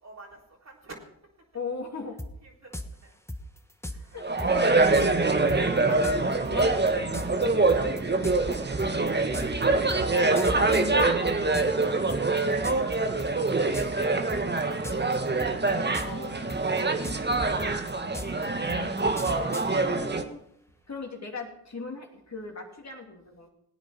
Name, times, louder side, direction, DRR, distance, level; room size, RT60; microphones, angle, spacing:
voice 1, 0.0-0.4 0.7-1.0 2.4-2.8 3.9-4.1 5.5-5.9 6.5-6.6 8.0-8.1 8.7-8.9 13.0-13.1 16.6-16.7, right 2 dB, 40° right, -1 dB, 3.8 m, -46 dB
voice 2, 1.5-2.2 4.1-4.6 5.9-7.2 10.1-11.4 16.0-16.6 19.8-20.4 20.9-23.5, left 4 dB, 40° left, 0 dB, 3.0 m, -38 dB
sound 1, 2.2-2.3 2.7-2.9 3.3-4.0 4.4-4.5 4.9-5.1 5.5-11.8 12.1-12.9 13.2-13.5 13.7-14.0 14.3-15.1 15.4-16.2 16.5-19.7, left 1 dB, 5° left, 1.5 m, -37 dB
sound 2, 4.2-20.2, right 3 dB, 25° right, 1.5 m, -25 dB
17.5 x 9.1 x 4.4 m, 0.77 s
supercardioid pair, 45°, 40 cm